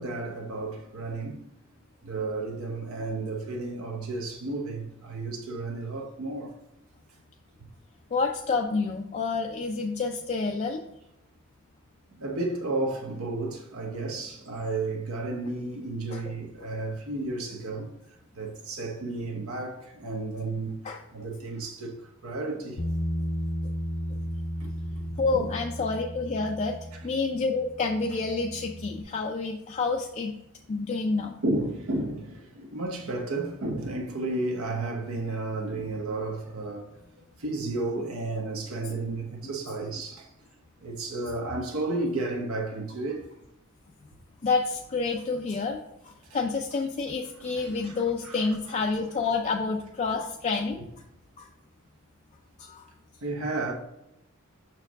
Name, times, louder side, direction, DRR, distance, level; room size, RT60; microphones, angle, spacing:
voice 1, 0.0-1.4 2.0-6.5 12.2-17.9 18.3-22.0 22.2-22.8 24.6-24.9 25.3-25.5 31.4-36.9 37.4-40.3 40.8-43.3 47.4-48.5 53.2-53.7, right 2 dB, 75° right, 0.9 m, -32 dB
voice 2, 8.1-10.8 16.1-16.2 20.8-21.0 25.2-26.7 27.0-30.3 30.7-31.3 44.4-50.8 51.4-51.5 52.6-52.9, left 4 dB, 35° left, 0.4 m, -28 dB
Bass guitar, 22.8-29.0, equal, 75° left, 0.7 m, -34 dB
6.1 x 4.5 x 3.5 m
head